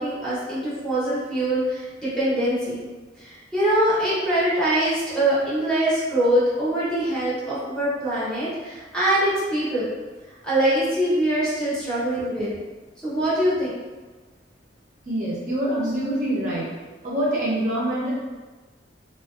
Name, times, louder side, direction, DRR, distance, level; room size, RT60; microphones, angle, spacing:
voice 1, 0.0-2.9 3.2-9.9 10.4-12.5 13.0-13.7, right 1 dB, 5° left, -10 dB, 0.7 m, -23 dB
voice 2, 15.0-16.7 17.0-18.1, right 1 dB, 45° right, -6 dB, 0.5 m, -25 dB
2.5 x 2.2 x 2.3 m, 1.3 s
head